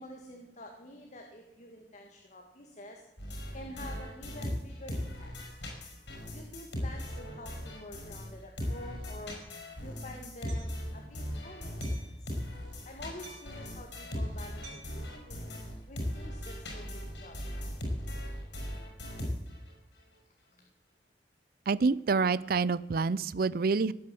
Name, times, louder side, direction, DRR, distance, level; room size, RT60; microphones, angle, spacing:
voice 1, 0.0-3.0 3.5-5.6 6.3-10.7 10.9-12.3 12.8-15.5 15.9-17.4 20.6-20.7, left 1 dB, 45° left, 2 dB, 2.0 m, -48 dB
sound 1, 3.2-8.3 8.6-19.7, equal, 75° left, 5.7 m, -38 dB
Hammer, 9.3-9.5 10.5-10.8 11.8-12.2 13.2-13.6 14.6-15.0, right 4 dB, 75° right, 5.4 m, -51 dB
voice 2, 21.7-23.9, right 4 dB, 55° right, 19 dB, 0.5 m, -27 dB
17.5 x 9.5 x 7.7 m, 0.89 s
head